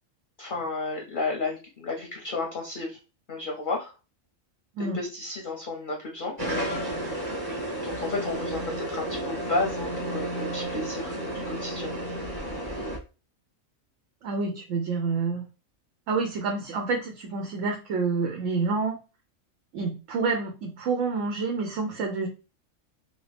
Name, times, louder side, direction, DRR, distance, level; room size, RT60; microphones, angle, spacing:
voice 1, 0.4-3.0 3.3-3.9 4.8-6.3 7.8-11.1 11.5-11.9, left 3 dB, 50° left, 1 dB, 0.7 m, -32 dB
sound 1, 6.4-13.0, right 1 dB, 20° right, 0.9 m, -32 dB
voice 2, 14.2-15.5 16.1-19.0 19.7-22.3, right 4 dB, 75° right, 2 dB, 1.0 m, -28 dB
2.8 x 2.8 x 3.3 m, 0.32 s
omnidirectional pair, 1.4 m